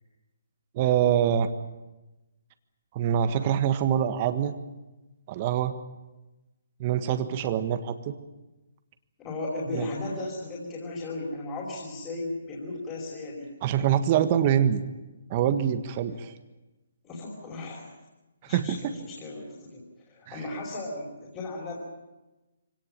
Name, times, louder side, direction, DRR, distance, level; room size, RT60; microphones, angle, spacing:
voice 1, 0.7-1.5 2.9-4.5 5.3-5.7 6.8-8.1 9.7-9.9 13.6-14.8 15.3-16.3 18.5-18.9 20.3-20.4, right 9 dB, 35° right, 9 dB, 1.5 m, -25 dB
voice 2, 9.2-13.5 17.0-17.9 18.5-21.8, left 2 dB, 25° left, -4 dB, 5.1 m, -36 dB
24.5 x 18.0 x 8.9 m, 1.1 s
hypercardioid pair, 140°, 0 cm